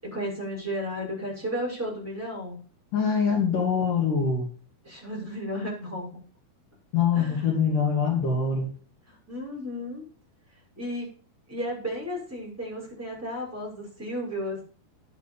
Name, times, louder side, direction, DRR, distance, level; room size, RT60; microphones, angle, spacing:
voice 1, 0.0-2.6 4.8-6.1 7.1-7.5 9.1-10.0 10.8-11.1 11.5-14.6, equal, 5° right, -4 dB, 6.1 m, -33 dB
voice 2, 2.9-4.5 6.9-8.7, left 6 dB, 55° left, 1 dB, 3.6 m, -24 dB
10.5 x 8.4 x 5.8 m, 0.40 s
omnidirectional pair, 5.0 m